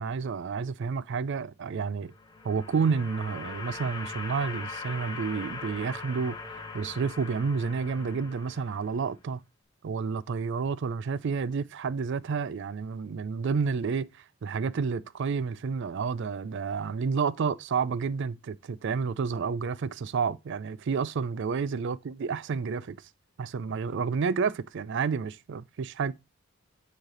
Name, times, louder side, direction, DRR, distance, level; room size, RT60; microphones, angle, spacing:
voice 1, 0.0-2.1 2.4-9.4 9.8-23.0 23.4-26.1, right 5 dB, 55° right, 0.4 m, -30 dB
sound 1, 2.0-9.1, left 4 dB, 20° left, 0.8 m, -41 dB
9.0 x 3.3 x 3.8 m
head